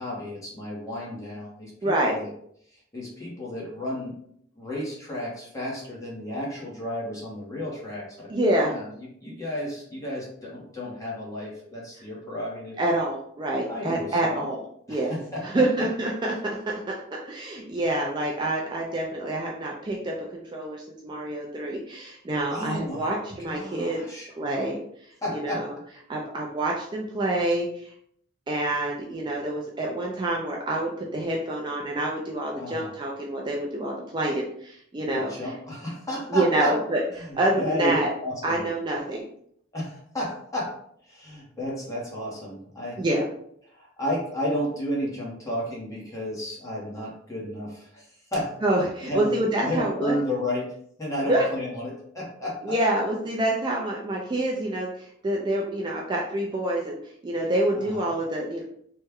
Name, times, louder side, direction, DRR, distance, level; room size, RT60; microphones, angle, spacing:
voice 1, 0.0-2.3 2.7-4.1 4.5-8.3 8.6-12.8 13.7-14.5 14.9-15.9 22.5-23.1 23.4-24.3 25.2-25.7 32.6-32.9 35.1-36.8 37.1-37.9 38.2-38.6 39.7-40.8 41.0-43.0 43.7-48.5 49.0-49.3 49.6-52.7 57.7-58.1, left 1 dB, 15° left, -5 dB, 1.1 m, -32 dB
voice 2, 1.8-2.2 8.3-8.7 12.8-14.6 14.9-15.1 15.4-16.4 16.7-24.1 24.4-24.8 25.4-25.7 26.1-27.9 28.5-35.3 36.3-38.1 38.4-39.2 43.0-43.3 48.6-50.2 51.3-51.4 52.6-57.0 57.2-58.6, right 1 dB, 25° right, -2 dB, 0.4 m, -27 dB
3.1 x 2.2 x 3.4 m, 0.68 s
head